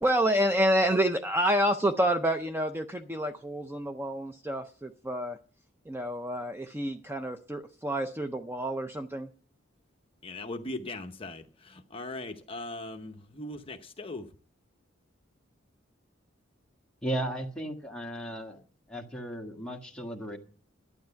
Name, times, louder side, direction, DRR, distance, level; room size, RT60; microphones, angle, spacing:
voice 1, 0.0-5.4 5.9-9.3, equal, 10° right, 0.5 m, -28 dB
voice 2, 10.2-14.3, left 2 dB, 30° left, 0.9 m, -39 dB
voice 3, 17.0-18.6 18.9-20.4, right 1 dB, 5° left, 1.6 m, -35 dB
12.0 x 9.7 x 5.7 m
head